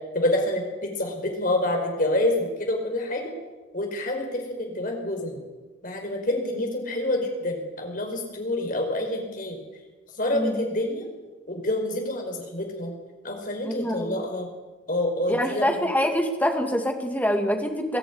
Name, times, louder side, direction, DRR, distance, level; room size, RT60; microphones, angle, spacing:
voice 1, 0.1-3.3 3.7-5.4 5.8-9.6 10.2-11.1 11.5-12.9 13.2-14.5 14.9-15.6, left 1 dB, 45° left, 2 dB, 5.1 m, -27 dB
voice 2, 10.3-10.7 13.6-14.2 15.3-18.0, equal, 10° left, 4 dB, 2.3 m, -25 dB
22.5 x 14.0 x 9.6 m, 1.2 s
head